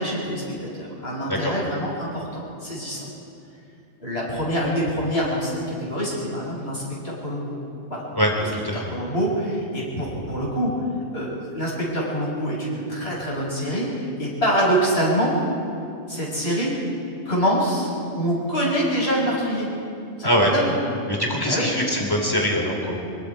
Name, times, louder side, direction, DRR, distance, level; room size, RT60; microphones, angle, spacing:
voice 1, 0.0-3.0 4.0-7.5 7.9-8.0 8.7-10.7 11.1-15.3 16.1-16.7 17.3-19.7 20.2-20.8 21.5-21.7, equal, 65° left, -5 dB, 7.1 m, -25 dB
voice 2, 1.3-1.7 8.1-8.8 20.2-20.5 21.1-23.1, equal, 20° left, 0 dB, 3.8 m, -23 dB
26.0 x 22.5 x 5.0 m, 2.5 s
omnidirectional pair, 1.1 m